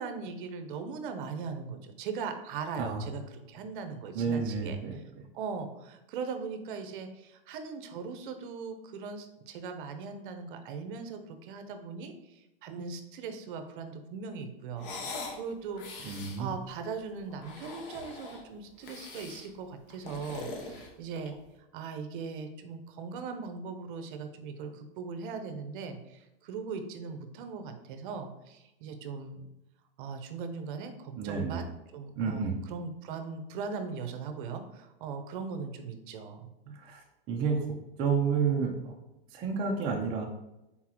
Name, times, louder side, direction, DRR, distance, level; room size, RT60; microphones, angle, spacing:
voice 1, 0.0-5.0 5.3-29.5 30.0-36.8, right 5 dB, 55° right, 7 dB, 0.7 m, -39 dB
voice 2, 4.1-5.0 16.0-16.5 31.1-31.6 32.2-32.5 36.7-37.0 37.3-37.6 38.0-38.9 39.3-40.3, right 5 dB, 20° right, 0 dB, 0.3 m, -30 dB
sound 1, 14.8-15.4 15.7-16.4 17.3-18.4 18.8-19.5 19.9-21.4, left 3 dB, 60° left, 1.0 m, -42 dB
4.1 x 3.6 x 2.9 m, 0.93 s
hypercardioid pair, 140°, 30 cm